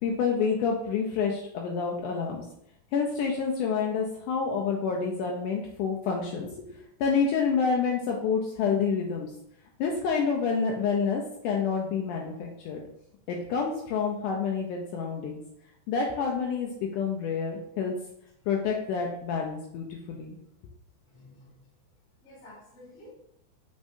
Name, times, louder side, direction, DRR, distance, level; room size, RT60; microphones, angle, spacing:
voice 1, 0.0-2.4 2.9-6.6 7.0-9.3 9.8-12.8 13.3-15.4 15.9-17.9 18.5-20.4, left 5 dB, 90° left, 0 dB, 1.8 m, -28 dB
voice 2, 21.1-21.5 22.2-23.1, left 1 dB, 30° left, -5 dB, 1.4 m, -51 dB
7.0 x 5.2 x 2.6 m, 0.75 s
omnidirectional pair, 4.3 m